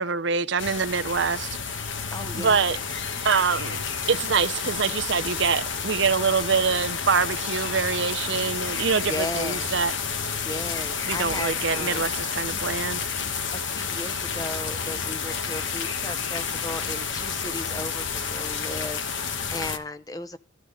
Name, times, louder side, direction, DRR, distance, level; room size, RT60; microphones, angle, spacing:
voice 1, 0.0-1.8 2.3-2.8 3.2-3.8 4.1-9.9 11.1-13.2, right 5 dB, 60° right, 0.7 m, -25 dB
sound 1, 0.6-19.8, left 6 dB, 65° left, 1.2 m, -30 dB
voice 2, 2.1-2.6 9.1-9.7 10.4-12.1 13.5-20.4, left 1 dB, 20° left, 0.6 m, -35 dB
12.5 x 12.5 x 3.9 m
head